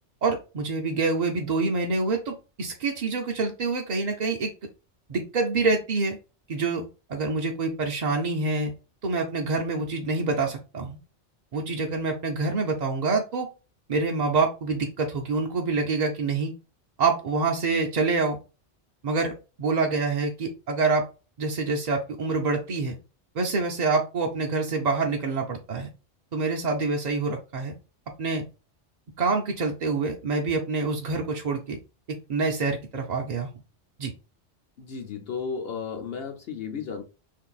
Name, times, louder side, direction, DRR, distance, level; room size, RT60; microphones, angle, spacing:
voice 1, 0.2-4.5 5.1-6.2 6.5-8.7 9.0-11.0 11.5-13.5 13.9-16.5 17.0-18.4 19.0-21.0 21.4-23.0 23.3-25.9 26.3-27.7 28.2-28.4 29.2-31.8 32.3-33.5 34.0-34.1, right 3 dB, 55° right, 0.5 m, -26 dB
voice 2, 34.8-37.0, left 6 dB, 60° left, 0.8 m, -34 dB
2.7 x 2.5 x 3.8 m
omnidirectional pair, 1.2 m